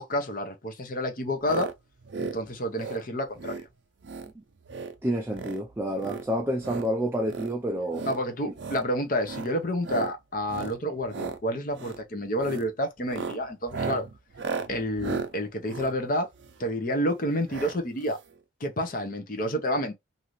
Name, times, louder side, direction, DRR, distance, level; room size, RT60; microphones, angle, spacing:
voice 1, 0.0-1.7 2.2-3.6 8.1-14.1 14.7-16.3 16.6-18.2 18.6-19.9, equal, 45° left, 0.7 m, -29 dB
sound 1, 1.4-1.7 2.0-2.4 2.7-3.0 3.4-3.6 4.0-4.3 4.6-4.9 5.3-5.6 6.0-6.9 7.2-7.5 7.9-8.2 8.5-8.8 9.2-9.5 9.8-10.1 10.5-10.8 11.1-11.4 11.7-12.0 12.4-12.7 13.0-16.7 17.5-17.8 18.0-18.1 18.3-18.4, right 4 dB, 65° right, 0.5 m, -35 dB
voice 2, 5.0-8.1 8.5-8.6, equal, 10° right, 0.3 m, -29 dB
2.7 x 2.5 x 3.0 m
head